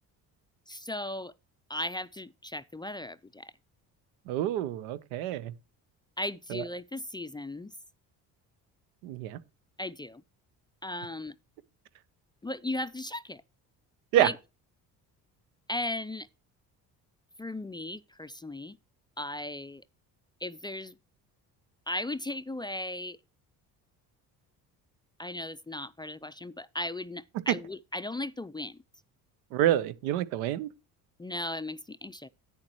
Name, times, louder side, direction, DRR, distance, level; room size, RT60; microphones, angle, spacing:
voice 1, 0.7-1.3 1.7-3.5 6.2-7.7 9.8-10.2 10.8-11.4 12.4-13.4 14.1-14.4 15.7-16.3 17.4-18.8 19.2-19.8 20.4-21.0 21.9-23.2 25.2-28.8 31.2-32.3, left 1 dB, 10° left, 0.4 m, -36 dB
voice 2, 4.3-5.5 6.5-6.6 9.0-9.4 14.1-14.3 27.5-27.6 29.5-30.7, right 12 dB, 90° right, 0.9 m, -27 dB
10.5 x 8.8 x 3.1 m
supercardioid pair, 70°, 42 cm